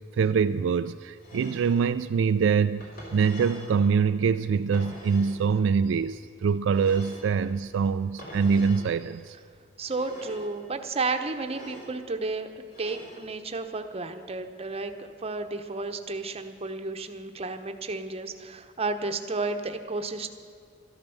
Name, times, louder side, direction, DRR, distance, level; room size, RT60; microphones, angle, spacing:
voice 1, 0.2-9.4, right 6 dB, 65° right, 10 dB, 0.3 m, -24 dB
sound 1, 1.2-1.8 2.8-3.8 4.7-5.4 6.7-7.4 8.2-8.9 9.8-10.5 11.4-11.9 12.7-13.2, equal, 45° left, 3.7 m, -44 dB
voice 2, 9.8-12.5 12.8-20.3, right 3 dB, 30° right, 7 dB, 0.9 m, -32 dB
12.5 x 12.0 x 7.0 m, 2.4 s
head